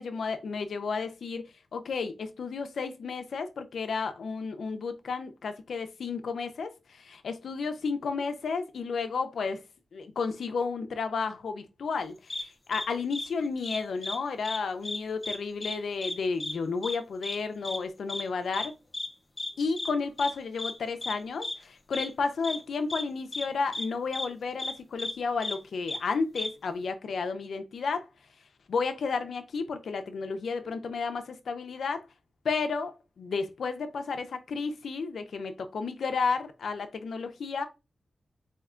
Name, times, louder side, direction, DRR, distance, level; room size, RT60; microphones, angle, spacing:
voice 1, 0.0-9.6 9.9-18.7 19.6-28.0 28.7-32.0 32.4-37.7, left 4 dB, 85° left, 0.5 m, -32 dB
sound 1, 12.3-12.4 12.7-12.8 13.1-13.2 13.6-14.2 14.4-14.6 14.8-15.4 15.6-15.7 16.0-16.1 16.4-16.5 16.8-17.0 17.2-17.4 17.6-17.8 18.1-18.2 18.5-18.7 18.9-19.1 19.4-19.5 19.8-19.9 20.2-20.3 20.6-20.7 21.0-21.1 21.4-21.5 21.9-22.1 22.4-22.6 22.9-23.0 23.3-23.4 23.7-23.9 24.1-24.3 24.6-24.7 25.0-25.1 25.4-25.5 25.9-26.0 26.3-26.5, left 2 dB, 20° left, 0.5 m, -34 dB
4.3 x 2.8 x 2.4 m
wide cardioid pair, 175°, 0 cm